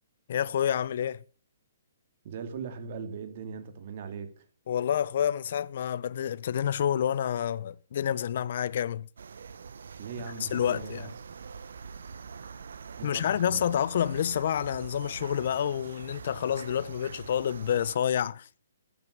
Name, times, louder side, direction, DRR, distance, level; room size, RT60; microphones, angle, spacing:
voice 1, 0.3-1.2 4.7-9.1 10.4-11.1 13.0-18.5, left 9 dB, 55° left, 0.7 m, -28 dB
voice 2, 2.2-4.4 10.0-11.1 13.0-13.6, right 6 dB, 45° right, 2.7 m, -39 dB
sound 1, 9.2-18.0, right 5 dB, 75° right, 1.0 m, -44 dB
14.0 x 8.7 x 6.7 m
hypercardioid pair, 150°, 0 cm